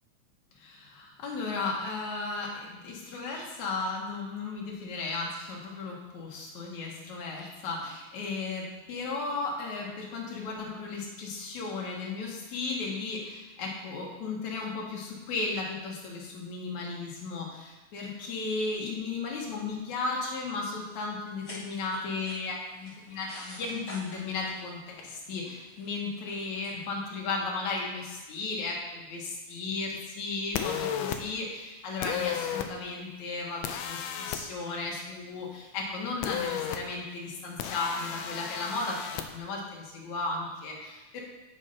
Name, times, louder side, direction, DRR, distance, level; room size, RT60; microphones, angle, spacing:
voice 1, 0.6-41.2, left 3 dB, 65° left, -2 dB, 2.9 m, -35 dB
sound 1, 21.3-27.2, left 1 dB, 30° left, 3.0 m, -49 dB
sound 2, 30.5-31.2 32.0-32.7 33.6-34.4 36.2-36.8 37.6-39.2, left 9 dB, 85° left, 1.5 m, -33 dB
9.5 x 5.4 x 5.6 m, 1.2 s
omnidirectional pair, 3.6 m